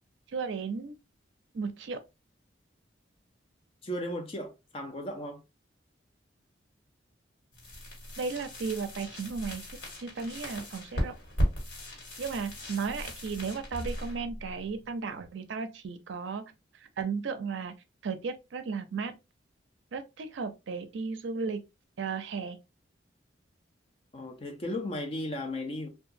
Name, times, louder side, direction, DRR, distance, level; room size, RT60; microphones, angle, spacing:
voice 1, 0.3-1.0 1.5-2.0 8.2-9.6 10.0-11.1 12.2-16.4 17.0-17.7 18.0-19.1 19.9-21.6 22.0-22.6, right 5 dB, 75° right, 0.4 m, -34 dB
voice 2, 3.8-5.4 24.1-25.9, left 1 dB, 30° left, 0.5 m, -35 dB
sound 1, 7.5-15.3, equal, 70° left, 1.3 m, -36 dB
2.8 x 2.3 x 2.5 m
head